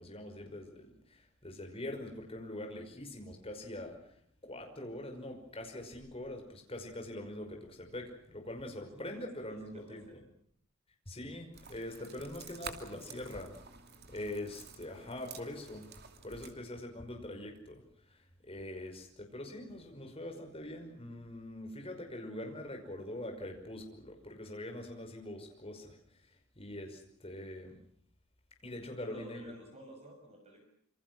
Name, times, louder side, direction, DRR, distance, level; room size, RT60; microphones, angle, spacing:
voice 1, 0.0-10.2 11.1-13.5 14.1-15.9 16.2-26.3 26.6-27.8 28.6-29.5, left 1 dB, 25° left, 3 dB, 5.5 m, -43 dB
voice 2, 8.9-10.2 29.0-30.7, right 1 dB, 30° right, 3 dB, 6.5 m, -53 dB
sound 1, 11.5-16.5, right 5 dB, 45° right, 2.7 m, -50 dB
27.5 x 25.5 x 6.2 m, 0.66 s
head